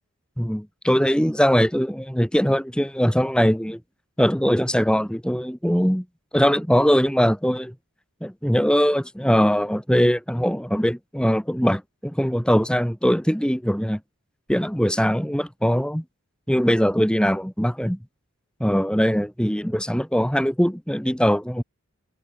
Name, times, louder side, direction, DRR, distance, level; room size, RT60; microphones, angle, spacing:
voice 1, 0.4-3.8 4.2-6.0 6.3-7.7 8.2-14.0 14.5-16.0 16.5-18.0 18.6-21.6, equal, 5° left, 2.8 m, -21 dB
head